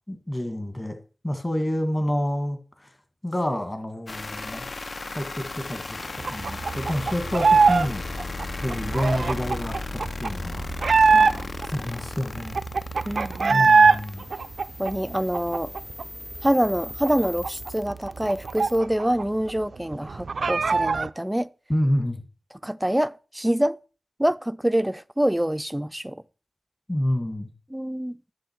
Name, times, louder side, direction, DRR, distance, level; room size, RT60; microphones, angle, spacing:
voice 1, 0.1-0.9 1.2-2.9 3.2-4.7 5.1-8.1 8.6-10.7 11.7-12.6 13.5-14.2 21.7-22.2 26.9-27.5, left 1 dB, 25° left, 1.7 m, -28 dB
sound 1, 4.1-18.8, left 3 dB, 55° left, 0.6 m, -36 dB
sound 2, 6.2-7.9 8.1-11.7 12.1-12.2 12.3-14.0 14.3-16.0 16.3-16.5 16.8-19.2 19.5-19.6 19.9-21.1, right 4 dB, 80° right, 0.3 m, -21 dB
voice 2, 11.1-11.9 13.0-13.7 14.8-15.7 16.4-21.5 22.6-23.8 24.2-26.2 27.7-28.2, right 1 dB, 10° right, 0.4 m, -26 dB
11.5 x 6.3 x 4.5 m
wide cardioid pair, 60°, 0 cm